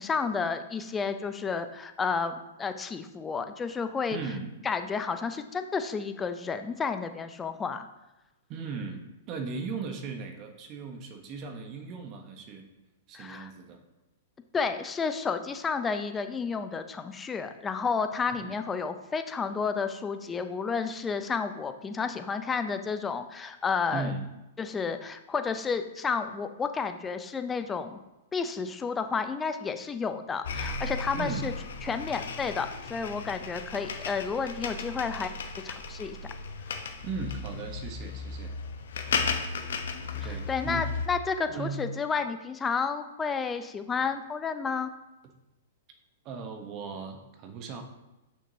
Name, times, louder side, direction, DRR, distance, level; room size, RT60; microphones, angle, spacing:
voice 1, 0.0-4.2 4.6-7.9 13.1-13.5 14.5-24.1 24.6-28.0 28.3-31.5 31.8-35.3 35.6-36.2 40.1-44.9, left 5 dB, 15° left, 8 dB, 0.5 m, -31 dB
voice 2, 4.1-4.5 8.5-12.6 13.1-13.8 18.3-18.6 23.9-24.2 31.1-31.4 37.0-38.6 40.2-40.9 41.5-41.8 46.2-47.8, right 4 dB, 40° right, 5 dB, 1.0 m, -37 dB
sound 1, 30.4-41.1, left 4 dB, 75° left, 0.8 m, -35 dB
6.7 x 6.0 x 2.8 m, 0.98 s
hypercardioid pair, 120°, 0 cm